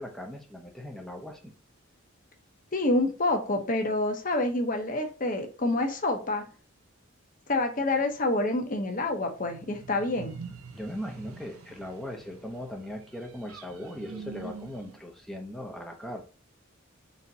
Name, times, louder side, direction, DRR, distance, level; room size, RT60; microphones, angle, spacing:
voice 1, 0.0-1.5 10.7-16.2, equal, ahead, 1 dB, 0.6 m, -39 dB
voice 2, 2.7-6.4 7.5-10.4, left 2 dB, 40° left, 5 dB, 0.8 m, -27 dB
sound 1, 9.1-15.0, right 4 dB, 90° right, 0.7 m, -45 dB
4.1 x 3.5 x 2.7 m, 0.36 s
head